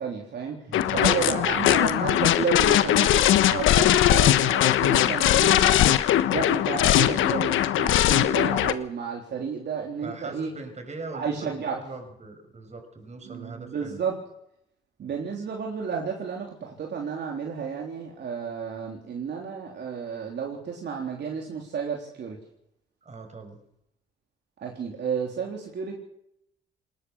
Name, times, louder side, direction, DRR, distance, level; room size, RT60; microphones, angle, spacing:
voice 1, 0.0-6.0 6.3-10.5 11.1-11.8 13.2-14.1 15.0-22.4 24.6-25.9, right 6 dB, 60° right, 0 dB, 3.7 m, -32 dB
sound 1, 0.7-8.7, left 12 dB, 85° left, 1.2 m, -20 dB
voice 2, 0.7-1.9 10.0-14.0 23.0-23.6, right 3 dB, 35° right, 6 dB, 6.1 m, -41 dB
20.5 x 20.0 x 6.4 m, 0.77 s
cardioid pair, 90°, 20 cm